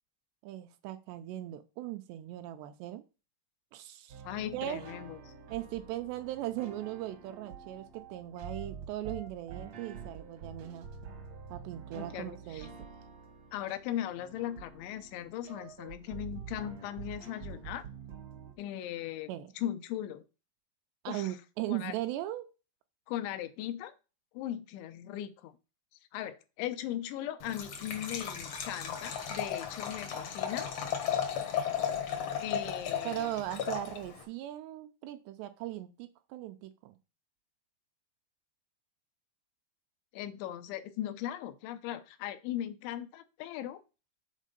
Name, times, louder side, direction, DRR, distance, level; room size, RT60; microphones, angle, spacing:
voice 1, 0.4-3.0 3.7-4.2 4.5-4.9 5.5-10.9 11.5-12.7 19.3-19.5 21.0-22.5 32.6-32.8 33.0-37.0, right 14 dB, 80° right, 9 dB, 2.6 m, -38 dB
sound 1, 4.1-18.5, right 6 dB, 65° right, 1.7 m, -47 dB
voice 2, 4.2-5.2 11.9-12.7 13.5-17.9 18.6-19.3 19.6-20.2 21.1-21.4 21.7-21.9 23.1-23.9 24.3-25.5 26.1-30.7 32.4-33.3 40.1-43.8, left 12 dB, 85° left, 10 dB, 3.1 m, -38 dB
Liquid, 27.4-34.2, left 8 dB, 65° left, 1.6 m, -35 dB
7.4 x 4.5 x 6.7 m, 0.31 s
omnidirectional pair, 5.2 m